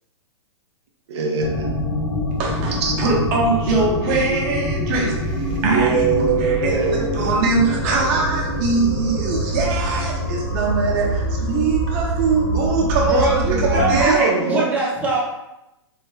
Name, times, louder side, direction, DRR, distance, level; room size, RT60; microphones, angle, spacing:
voice 1, 1.1-1.8 2.8-3.0 5.6-7.4 13.9-14.7, right 5 dB, 70° right, 1 dB, 0.6 m, -21 dB
sound 1, 1.4-14.1, equal, 40° left, 0.6 m, -24 dB
voice 2, 2.4-6.1 6.4-14.3, right 4 dB, 40° right, -2 dB, 0.9 m, -22 dB
voice 3, 13.0-15.2, right 2 dB, 10° right, -5 dB, 0.7 m, -22 dB
3.3 x 2.2 x 3.2 m, 0.92 s
hypercardioid pair, 140°, 14 cm